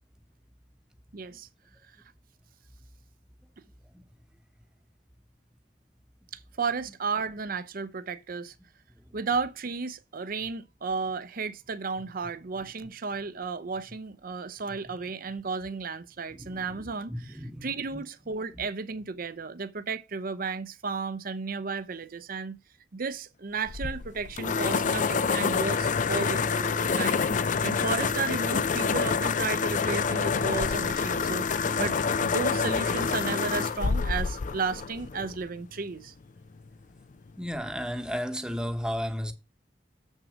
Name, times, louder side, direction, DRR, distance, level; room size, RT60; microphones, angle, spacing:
voice 1, 1.1-1.5 6.3-8.5 9.1-22.6 22.9-27.3 27.6-32.0 32.2-36.1, right 4 dB, 50° right, 0.6 m, -33 dB
voice 2, 16.4-16.8 17.1-18.0 18.5-18.6 37.4-39.3, equal, 5° right, 1.0 m, -34 dB
sound 1, 23.7-35.5, left 5 dB, 45° left, 0.5 m, -27 dB
7.5 x 6.2 x 5.0 m
head